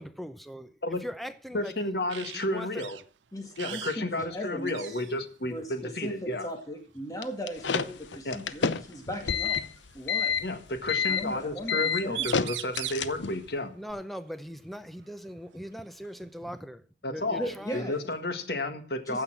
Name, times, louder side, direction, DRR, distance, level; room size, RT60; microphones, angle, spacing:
voice 1, 0.0-2.0 2.3-2.8 8.7-9.0 10.4-10.5 13.7-16.8 17.1-17.9, equal, ahead, 0.8 m, -40 dB
voice 2, 1.5-3.0 3.6-6.5 8.3-8.4 10.4-13.7 17.0-19.2, left 2 dB, 60° left, 1.7 m, -32 dB
sound 1, 2.1-2.5 2.8-3.0 3.5-4.0 4.3-4.4 4.7-5.2 6.4-6.6 8.3-8.4 9.6-10.4 11.8-11.9 12.1-13.1 15.0-15.1 15.6-16.6, right 13 dB, 80° right, 0.5 m, -39 dB
voice 3, 3.3-4.9 5.5-9.6 9.9-10.4 11.1-12.3 17.3-18.0 19.1-19.2, equal, 20° left, 2.0 m, -38 dB
sound 2, 7.2-13.5, left 6 dB, 85° left, 0.8 m, -29 dB
15.0 x 5.7 x 7.5 m
head